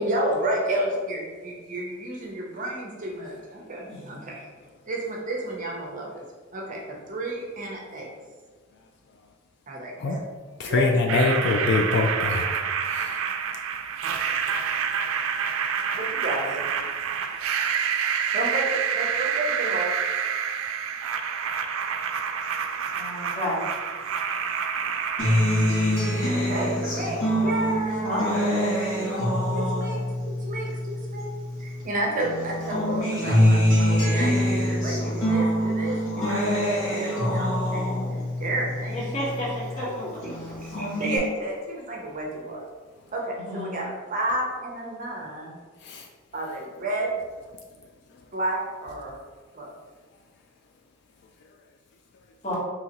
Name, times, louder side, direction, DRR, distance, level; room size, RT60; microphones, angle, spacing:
voice 1, 0.0-4.4 4.9-6.2 6.5-8.1 9.7-10.2 10.7-11.1 15.9-16.6 18.3-19.9 26.2-28.4 29.5-31.3 31.6-36.4 36.9-39.0 40.8-42.6 43.1-45.6 46.3-47.1 48.3-49.2 49.5-49.7, right 1 dB, 40° right, -1 dB, 0.6 m, -31 dB
voice 2, 3.9-4.2 22.9-23.6 28.0-28.4 38.9-40.4 43.4-43.8 52.4-52.5, left 1 dB, 35° left, -7 dB, 1.2 m, -31 dB
voice 3, 10.6-12.4 12.9-13.2 45.8-46.1, left 3 dB, 55° left, 2 dB, 0.3 m, -23 dB
sound 1, 11.1-27.0, right 7 dB, 90° right, 0.3 m, -28 dB
Acoustic guitar, 25.2-31.8 32.2-39.8 40.2-41.2, equal, 80° left, 1.3 m, -25 dB
3.8 x 3.0 x 2.9 m, 1.4 s
head